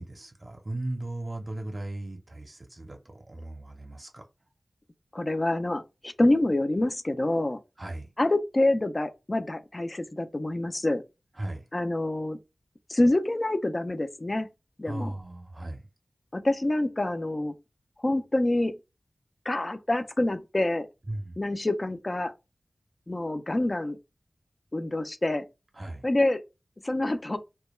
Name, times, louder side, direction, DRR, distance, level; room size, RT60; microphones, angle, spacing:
voice 1, 0.0-3.0 3.3-4.2 7.8-8.1 11.4-11.6 14.9-15.8 21.1-21.4 25.7-26.1, right 1 dB, 40° right, 0.5 m, -36 dB
voice 2, 5.1-7.6 8.2-11.0 11.7-12.4 12.9-14.5 14.8-15.1 16.3-17.5 18.0-18.8 19.5-20.9 21.4-22.3 23.1-24.0 24.7-25.5 26.0-26.4 26.8-27.4, left 1 dB, 35° left, 0.3 m, -26 dB
2.2 x 2.1 x 3.0 m
wide cardioid pair, 70°, 0 cm